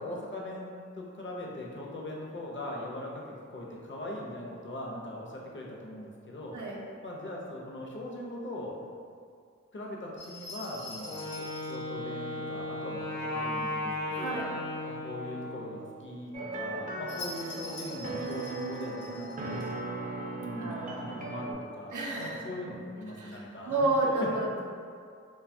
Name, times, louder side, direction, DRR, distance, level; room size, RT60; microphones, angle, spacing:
voice 1, 0.0-3.2 3.5-6.6 7.0-8.8 9.7-14.4 14.9-19.7 20.4-24.4, left 1 dB, 40° left, -3 dB, 0.6 m, -40 dB
sound 1, 10.2-11.8 17.1-19.7, left 2 dB, 85° left, 0.9 m, -44 dB
Wind instrument woodwind instrument, 11.0-15.8, left 1 dB, 65° left, 1.0 m, -36 dB
voice 2, 14.1-14.5 20.6-21.3 21.9-22.4 23.1-24.6, right 2 dB, 85° right, -1 dB, 0.5 m, -31 dB
sound 2, 16.3-21.5, right 2 dB, 30° right, 0.4 m, -37 dB
2.8 x 2.2 x 2.6 m, 2.2 s
cardioid pair, 45°, 29 cm